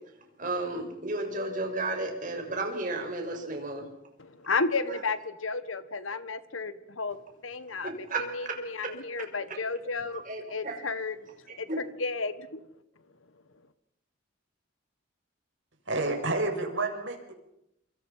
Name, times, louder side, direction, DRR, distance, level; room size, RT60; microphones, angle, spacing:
voice 1, 0.4-3.8 4.9-5.0 7.8-8.5 8.8-9.3 10.1-10.8 11.5-11.8, right 2 dB, 40° right, 3 dB, 6.4 m, -33 dB
voice 2, 4.2-7.2 7.4-10.2 10.5-11.2 11.6-12.6, left 4 dB, 85° left, 13 dB, 1.6 m, -32 dB
voice 3, 15.9-17.3, right 2 dB, 70° right, 3 dB, 6.7 m, -29 dB
27.0 x 26.0 x 5.8 m, 0.79 s
head